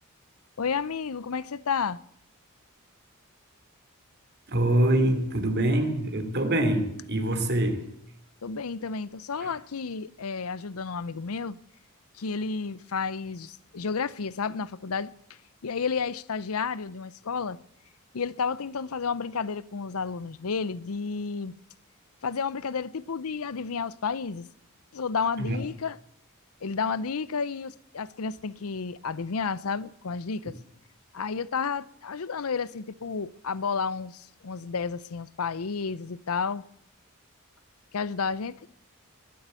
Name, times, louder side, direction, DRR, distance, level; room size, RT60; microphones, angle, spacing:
voice 1, 0.6-2.0 8.4-11.6 12.2-15.1 15.6-17.6 18.1-21.6 22.2-24.5 24.9-26.0 26.6-30.5 31.1-36.7 37.9-38.6, left 5 dB, 80° left, 0.7 m, -31 dB
voice 2, 4.5-7.8 9.4-9.5 25.5-25.6, right 1 dB, 50° right, 2.7 m, -24 dB
21.0 x 7.9 x 8.2 m
head